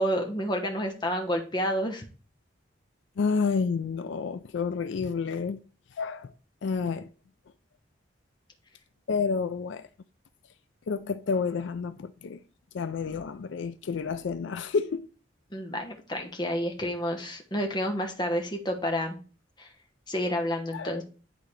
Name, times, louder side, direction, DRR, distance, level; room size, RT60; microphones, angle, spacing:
voice 1, 0.0-2.0 15.5-19.2 19.6-19.7 20.1-21.0, equal, 20° left, 1.1 m, -29 dB
voice 2, 3.2-5.6 6.0-6.3 6.6-7.1 9.1-9.9 10.9-12.4 12.7-15.1 20.7-21.0, left 5 dB, 75° left, 0.4 m, -29 dB
10.5 x 3.8 x 3.3 m
head